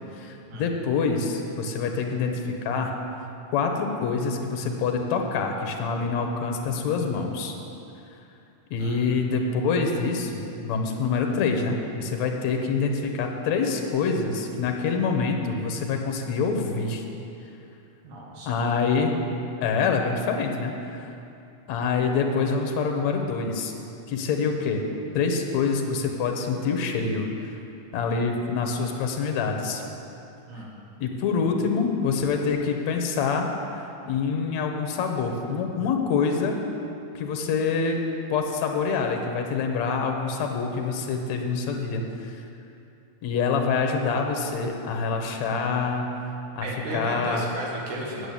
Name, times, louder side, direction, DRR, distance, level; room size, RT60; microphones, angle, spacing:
voice 1, 0.1-2.9 3.5-7.5 8.7-17.0 18.5-19.2 19.6-21.1 21.7-23.7 24.1-24.8 25.2-27.5 27.9-29.8 31.0-36.6 37.2-38.0 38.3-42.4 43.2-46.1 46.6-46.7 46.9-47.4, left 5 dB, 75° left, 3 dB, 2.2 m, -26 dB
voice 2, 18.0-18.5 30.5-30.7 46.6-48.3, right 1 dB, 90° right, -3 dB, 3.2 m, -34 dB
8.5 x 8.0 x 8.5 m, 2.7 s
omnidirectional pair, 3.3 m